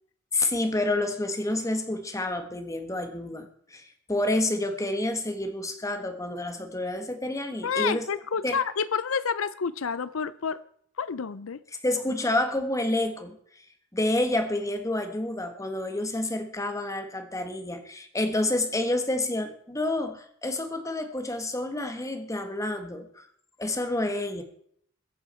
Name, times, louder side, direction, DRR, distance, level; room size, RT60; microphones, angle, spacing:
voice 1, 0.3-8.0 8.4-8.6 11.8-13.4 13.9-23.3 23.6-24.4, left 1 dB, 15° left, 6 dB, 1.5 m, -29 dB
voice 2, 7.6-10.6 11.0-11.6, left 6 dB, 75° left, 15 dB, 0.6 m, -29 dB
22.0 x 8.5 x 4.4 m, 0.64 s
head